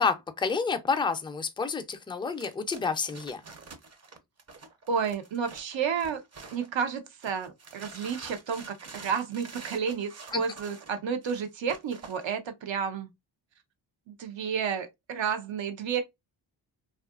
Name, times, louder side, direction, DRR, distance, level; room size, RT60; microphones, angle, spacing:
voice 1, 0.0-3.4 10.3-10.4, left 5 dB, 10° left, 0.4 m, -29 dB
sound 1, 2.3-6.8 7.2-12.3, right 4 dB, 35° right, 0.6 m, -47 dB
voice 2, 4.9-6.2 6.5-13.1 14.1-16.0, right 6 dB, 70° right, 0.7 m, -31 dB
2.6 x 2.4 x 2.3 m
cardioid pair, 85°, 46 cm